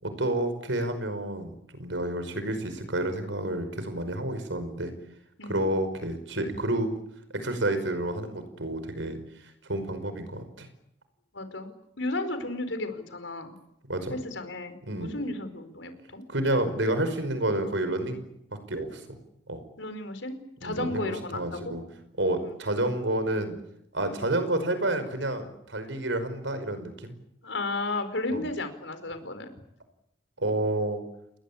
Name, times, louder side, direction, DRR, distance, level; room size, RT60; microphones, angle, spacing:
voice 1, 0.0-4.9 5.4-6.9 7.3-9.2 9.7-10.7 13.9-14.2 14.9-15.3 16.3-18.2 18.7-19.2 19.5-19.6 20.6-21.8 22.2-23.6 23.9-27.1 28.3-28.4 30.4-31.0, right 1 dB, 90° right, 10 dB, 5.3 m, -29 dB
voice 2, 11.3-11.7 12.0-13.5 14.1-16.2 19.8-20.4 20.6-21.8 22.4-22.5 27.4-29.5, left 2 dB, 90° left, 9 dB, 4.8 m, -33 dB
29.5 x 21.0 x 8.7 m, 0.80 s
head